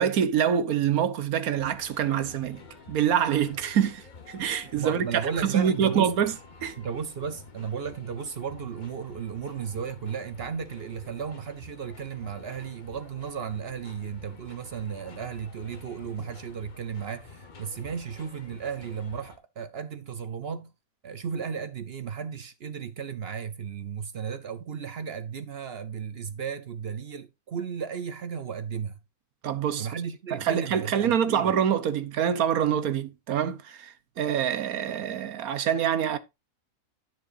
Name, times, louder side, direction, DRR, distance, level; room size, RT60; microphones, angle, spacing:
voice 1, 0.0-2.6 2.9-6.3 6.6-6.7 29.4-29.9 30.3-36.2, right 8 dB, 80° right, 1.4 m, -25 dB
sound 1, 1.6-19.4, left 4 dB, 35° left, 1.2 m, -49 dB
voice 2, 4.8-6.1 6.8-20.7 21.0-29.0 29.8-31.5, right 7 dB, 55° right, 0.8 m, -34 dB
10.5 x 9.6 x 2.6 m
omnidirectional pair, 1.5 m